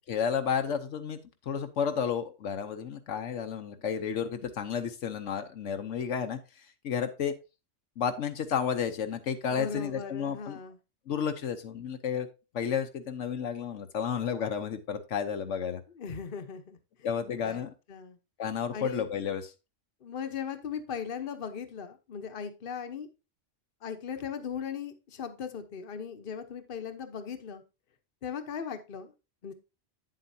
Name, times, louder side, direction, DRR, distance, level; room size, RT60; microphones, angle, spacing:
voice 1, 0.1-1.2 1.5-6.4 6.8-7.3 8.0-10.6 11.1-12.3 12.5-15.8 17.0-17.7 18.4-19.5, left 7 dB, 80° left, 7 dB, 1.2 m, -31 dB
voice 2, 9.5-10.8 16.0-16.8 17.4-17.6 17.9-18.2 18.7-19.1 20.0-23.1 23.8-27.6 28.2-29.1 29.4-29.5, left 7 dB, 50° left, 8 dB, 1.1 m, -38 dB
8.9 x 7.6 x 2.7 m, 0.28 s
omnidirectional pair, 1.2 m